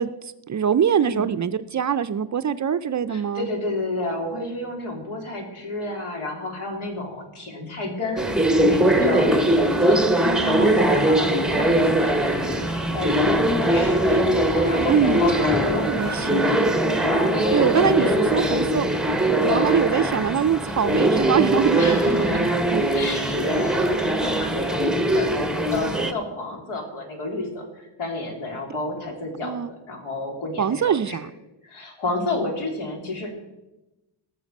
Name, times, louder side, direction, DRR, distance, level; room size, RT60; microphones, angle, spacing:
voice 1, 0.0-3.5 10.3-10.8 14.9-15.2 15.9-16.5 17.5-18.9 19.4-22.9 29.4-29.7 30.6-31.3, right 8 dB, 40° right, 12 dB, 0.4 m, -23 dB
voice 2, 1.0-1.3 3.1-8.2 8.6-10.1 10.4-14.2 14.5-16.6 17.0-18.6 19.4-19.9 21.7-22.4 22.9-29.6 29.9-31.2 31.6-33.3, left 2 dB, 85° left, 1 dB, 3.2 m, -30 dB
sound 1, 8.2-26.1, right 1 dB, ahead, 0.7 m, -21 dB
Sink (filling or washing), 10.7-16.2, left 1 dB, 20° left, 2.6 m, -36 dB
18.5 x 6.8 x 5.3 m, 1.0 s
wide cardioid pair, 120°, 49 cm